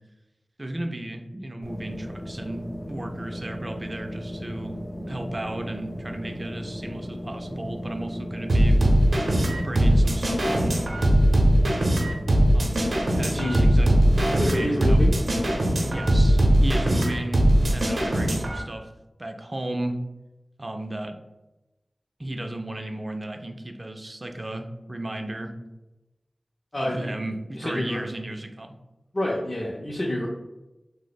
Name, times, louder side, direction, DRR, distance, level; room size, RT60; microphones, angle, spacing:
voice 1, 0.6-8.8 9.6-10.8 12.5-13.9 14.3-15.0 15.8-18.9 19.2-20.0 20.6-21.2 22.2-25.5 26.8-28.8, right 1 dB, 40° right, 4 dB, 0.3 m, -34 dB
sound 1, 1.6-16.4, equal, 75° left, 0.7 m, -36 dB
sound 2, 8.5-18.6, right 1 dB, 85° right, 0.6 m, -20 dB
voice 2, 13.3-13.7 14.4-15.1 26.7-27.1 27.6-28.0 29.1-30.3, left 1 dB, 40° left, -4 dB, 0.5 m, -28 dB
2.8 x 2.0 x 4.0 m, 1.0 s
wide cardioid pair, 55°, 0 cm